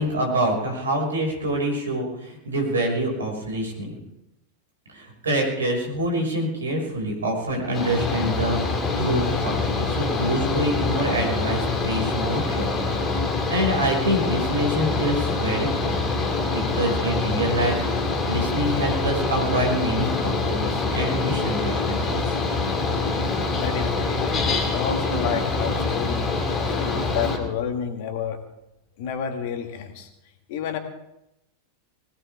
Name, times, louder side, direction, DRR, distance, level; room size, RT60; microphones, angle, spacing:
voice 1, 0.0-4.0 4.9-12.8 13.5-16.0 16.3-22.3, right 1 dB, 70° right, 1 dB, 6.0 m, -26 dB
Mechanical fan, 7.7-27.4, left 3 dB, 25° left, 2.7 m, -25 dB
voice 2, 23.6-26.3 26.6-28.4 29.0-30.1 30.5-30.8, left 7 dB, 50° left, 5 dB, 2.3 m, -30 dB
21.0 x 18.0 x 3.7 m, 0.88 s
figure-of-eight pair, 90°, 0 cm